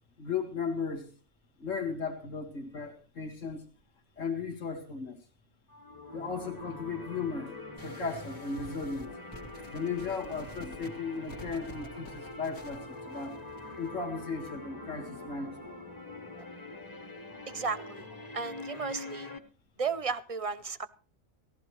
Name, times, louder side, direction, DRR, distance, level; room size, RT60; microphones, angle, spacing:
voice 1, 0.2-1.1 1.6-3.7 4.2-5.2 6.1-7.6 7.8-9.1 9.7-13.3 13.8-15.7, left 5 dB, 65° left, 2 dB, 2.3 m, -36 dB
sound 1, 5.7-19.4, left 2 dB, 15° left, 1.0 m, -44 dB
sound 2, 7.8-13.9, equal, 90° left, 2.9 m, -49 dB
voice 2, 17.5-18.1 18.3-19.3 19.8-20.9, right 5 dB, 35° right, 14 dB, 0.5 m, -34 dB
18.5 x 15.0 x 3.1 m, 0.36 s
omnidirectional pair, 1.4 m